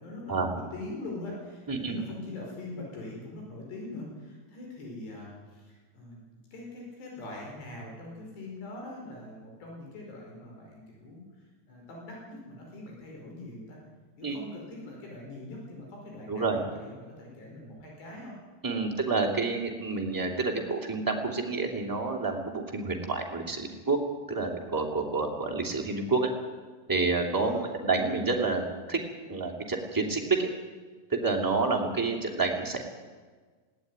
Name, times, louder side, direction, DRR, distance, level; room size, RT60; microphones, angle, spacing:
voice 1, 0.0-6.2 6.5-11.2 11.7-13.8 14.2-18.3 18.9-19.1 27.4-27.7, left 2 dB, 85° left, -1 dB, 7.2 m, -42 dB
voice 2, 1.7-2.0 14.2-14.4 16.3-16.6 18.6-24.0 24.3-26.3 26.9-29.0 29.3-30.5 31.1-32.8, right 3 dB, 5° right, 1 dB, 2.1 m, -29 dB
20.0 x 17.5 x 9.6 m, 1.4 s
omnidirectional pair, 4.7 m